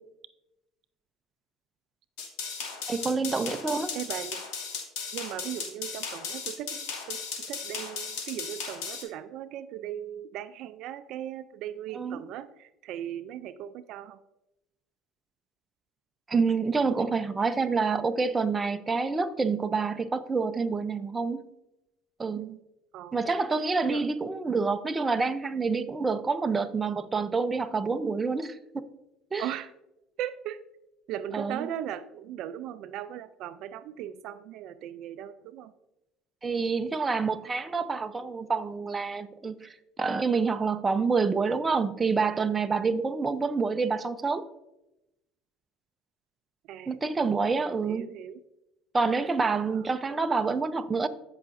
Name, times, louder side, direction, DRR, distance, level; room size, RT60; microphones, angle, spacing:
sound 1, 2.2-9.0, left 5 dB, 80° left, 2.5 m, -36 dB
voice 1, 2.9-3.9 11.9-12.2 16.3-21.5 22.2-22.5 23.1-28.6 29.3-29.5 31.3-31.7 36.4-44.5 46.9-48.1 48.9-51.1, right 4 dB, 20° right, 0.6 m, -27 dB
voice 2, 3.9-4.5 5.1-14.2 22.3-22.6 22.9-23.2 23.9-24.1 29.4-29.7 30.2-30.6 31.1-35.7 46.7-47.0 47.9-48.4 49.7-49.9, right 11 dB, 65° right, 0.4 m, -38 dB
14.0 x 5.7 x 2.6 m
supercardioid pair, 115°, 0 cm